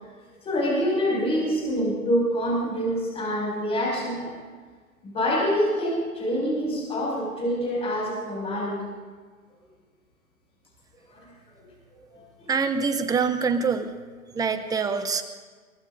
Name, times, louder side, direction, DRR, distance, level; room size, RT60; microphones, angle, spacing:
voice 1, 0.4-4.3 5.0-8.8 11.1-12.5, equal, 15° left, -3 dB, 6.3 m, -26 dB
voice 2, 12.5-13.9 14.3-15.2, right 5 dB, 10° right, 9 dB, 0.7 m, -25 dB
22.5 x 22.5 x 2.7 m, 1.5 s
hypercardioid pair, 125°, 42 cm